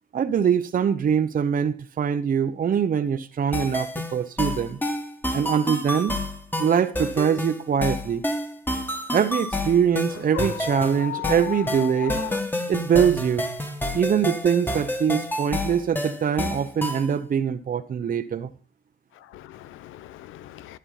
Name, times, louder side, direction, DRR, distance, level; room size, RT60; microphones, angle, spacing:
voice 1, 0.1-4.8 5.3-6.1 6.6-8.2 9.1-12.2 12.7-13.5 13.9-18.5, right 7 dB, 45° right, 0.9 m, -23 dB
sound 1, 3.5-17.1, left 1 dB, 10° left, 1.8 m, -29 dB
voice 2, 10.3-12.4 19.3-20.8, left 14 dB, 90° left, 0.7 m, -35 dB
11.5 x 8.8 x 4.2 m
cardioid pair, 90°, 20 cm